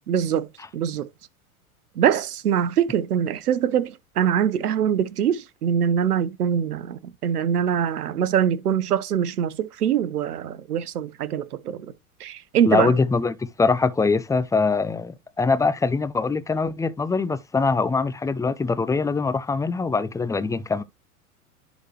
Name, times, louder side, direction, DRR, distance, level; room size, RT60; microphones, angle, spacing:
voice 1, 0.1-0.5 0.7-1.1 2.0-11.9 12.2-12.9, right 9 dB, 80° right, 1.0 m, -23 dB
voice 2, 12.6-20.8, left 4 dB, 5° left, 0.6 m, -23 dB
11.0 x 4.1 x 3.0 m
hypercardioid pair, 90°, 45 cm